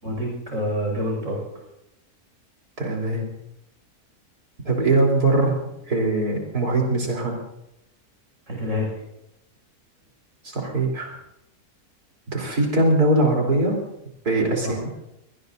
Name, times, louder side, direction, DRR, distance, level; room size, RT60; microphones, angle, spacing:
voice 1, 0.0-1.4 8.5-9.0 14.6-14.9, left 1 dB, 55° right, -2 dB, 6.3 m, -27 dB
voice 2, 2.8-3.2 4.7-5.6 5.9-7.3 10.4-11.1 12.3-13.8 14.2-14.8, right 2 dB, 75° right, -1 dB, 4.3 m, -21 dB
24.0 x 19.5 x 2.7 m, 0.84 s
omnidirectional pair, 1.7 m